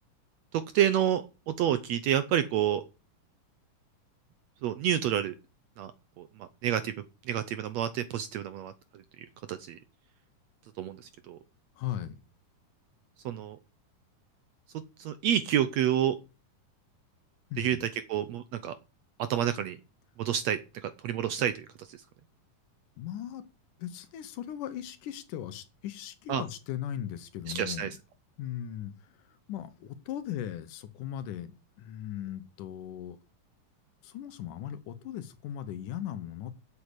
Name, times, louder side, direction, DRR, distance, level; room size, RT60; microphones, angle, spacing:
voice 1, 0.7-2.8 4.6-5.3 5.8-5.9 6.2-6.9 7.3-8.7 9.5-9.8 10.8-11.0 11.3-11.4 13.2-13.6 15.0-16.2 17.6-18.7 19.3-19.8 20.2-21.5 21.8-22.0 26.3-26.4 27.5-27.9, right 10 dB, 75° right, 12 dB, 1.6 m, -28 dB
voice 2, 11.8-12.2 17.5-17.9 23.0-23.5 23.8-27.9 28.4-33.2 34.0-36.5, left 11 dB, 75° left, 12 dB, 2.6 m, -38 dB
8.3 x 7.8 x 8.1 m, 0.31 s
omnidirectional pair, 3.8 m